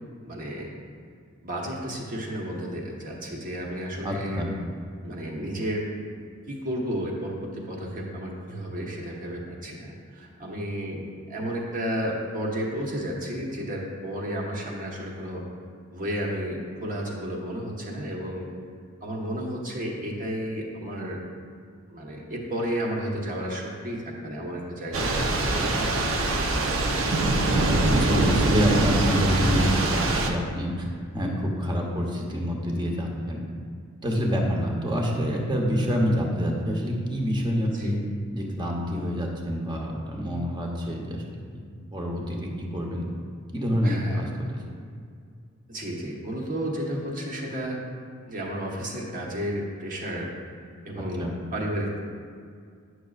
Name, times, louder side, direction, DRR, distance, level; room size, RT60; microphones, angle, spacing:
voice 1, 0.2-0.7 1.4-4.4 5.0-5.9 6.5-11.0 11.3-15.4 15.9-18.5 19.0-21.2 21.9-25.2 25.5-27.0 37.6-38.0 43.8-44.6 45.7-47.8 48.3-50.3 50.8-52.1, equal, 40° right, -2 dB, 1.2 m, -32 dB
voice 2, 4.0-4.5 27.9-30.9 31.1-33.4 34.0-38.0 38.3-41.2 41.5-41.6 41.9-43.1 43.5-44.3 51.2-51.4, equal, 20° right, -1 dB, 0.9 m, -27 dB
Thunder / Rain, 24.9-30.3, right 2 dB, 75° right, 0.7 m, -23 dB
10.0 x 6.3 x 2.4 m, 2.2 s
head